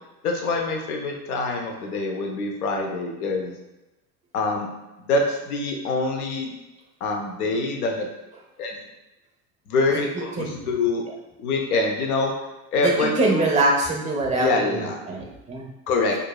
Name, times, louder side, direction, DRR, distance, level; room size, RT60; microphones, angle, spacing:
voice 1, 0.2-3.5 4.3-4.7 5.0-6.5 7.0-8.1 8.6-8.8 9.7-11.0 11.4-12.3 12.7-13.5 14.4-15.0 15.9-16.2, left 3 dB, 70° left, 1 dB, 0.8 m, -25 dB
voice 2, 10.4-10.7 12.8-15.7, right 2 dB, 15° right, 0 dB, 0.9 m, -24 dB
4.5 x 2.6 x 2.3 m, 1.0 s
figure-of-eight pair, 80°, 47 cm